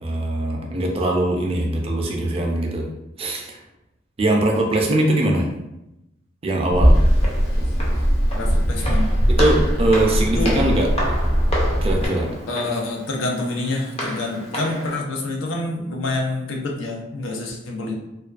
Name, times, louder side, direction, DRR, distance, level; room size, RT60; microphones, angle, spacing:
voice 1, 0.0-2.8 3.2-3.5 4.2-5.5 6.4-7.0 9.4-10.9 11.8-12.3, right 1 dB, 30° right, 0 dB, 0.4 m, -21 dB
sound 1, 6.7-12.1, equal, 50° left, 0.9 m, -19 dB
Walk footsteps, 6.9-14.9, equal, 35° left, 0.5 m, -31 dB
voice 2, 8.3-9.1 10.3-10.5 12.5-18.0, left 2 dB, 90° left, 0 dB, 0.5 m, -27 dB
2.4 x 2.2 x 2.3 m, 0.88 s
head